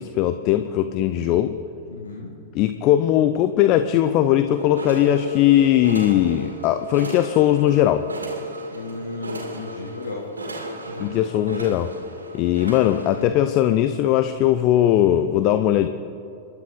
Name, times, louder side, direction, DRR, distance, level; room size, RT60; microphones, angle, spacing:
voice 1, 0.0-1.6 2.5-8.1 11.0-11.9 12.3-15.9, left 12 dB, 40° left, 10 dB, 0.6 m, -19 dB
voice 2, 1.9-2.3 8.7-10.2 10.9-11.2, left 3 dB, 75° left, -3 dB, 2.0 m, -34 dB
sound 1, 4.6-13.2, right 1 dB, 75° right, 2.3 m, -34 dB
29.5 x 12.0 x 3.9 m, 2.7 s
figure-of-eight pair, 90°, 0 cm